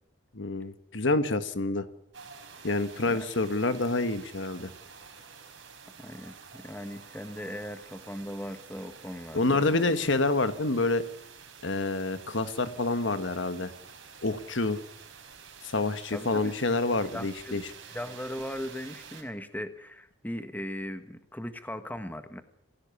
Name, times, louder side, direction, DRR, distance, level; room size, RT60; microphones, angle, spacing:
voice 1, 0.3-1.9 2.6-4.7 9.3-11.0 11.6-13.7 14.2-14.8 15.6-17.6, left 2 dB, 70° left, 11 dB, 1.5 m, -27 dB
sound 1, 2.1-19.2, right 6 dB, 65° right, 4.9 m, -49 dB
voice 2, 6.0-9.9 16.1-16.5 17.1-22.4, equal, 10° left, 9 dB, 1.4 m, -38 dB
28.0 x 16.0 x 7.1 m, 0.73 s
head